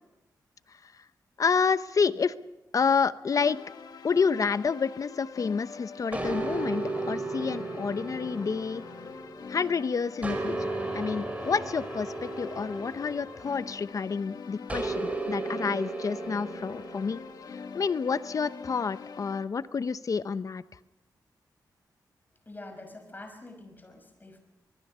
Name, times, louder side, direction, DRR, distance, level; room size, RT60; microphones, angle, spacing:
voice 1, 1.4-2.3 2.7-3.6 4.0-8.8 9.5-17.2 17.5-20.6, left 5 dB, 50° left, 14 dB, 0.8 m, -29 dB
sound 1, 3.3-19.4, left 5 dB, 65° left, 1.5 m, -44 dB
sound 2, 6.1-9.7 10.2-13.9 14.7-17.4, right 3 dB, 20° right, 5.0 m, -35 dB
voice 2, 22.5-24.4, left 2 dB, 25° left, 5 dB, 5.7 m, -46 dB
23.5 x 22.0 x 5.6 m, 1.0 s
cardioid pair, 90°, 7 cm